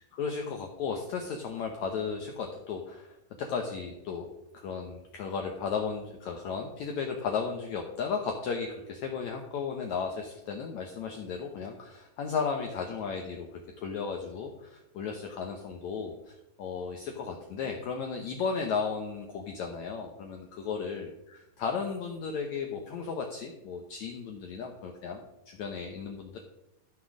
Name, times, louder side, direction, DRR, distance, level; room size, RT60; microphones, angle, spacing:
voice 1, 0.1-13.5 13.8-26.4, left 5 dB, 85° left, 3 dB, 1.6 m, -35 dB
13.5 x 6.1 x 6.3 m, 0.90 s
omnidirectional pair, 4.6 m